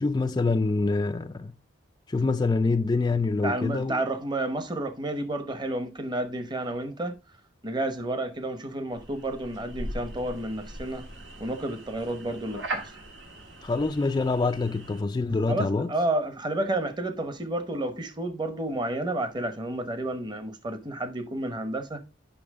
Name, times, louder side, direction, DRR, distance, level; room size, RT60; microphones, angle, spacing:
voice 1, 0.0-1.5 2.1-4.0 13.6-15.9, left 3 dB, 20° left, 0.3 m, -25 dB
voice 2, 3.4-7.2 7.6-11.1 11.4-12.9 15.5-22.0, right 1 dB, 25° right, 0.9 m, -31 dB
sound 1, 8.9-15.0, right 1 dB, 85° right, 1.7 m, -40 dB
8.6 x 5.8 x 3.6 m
head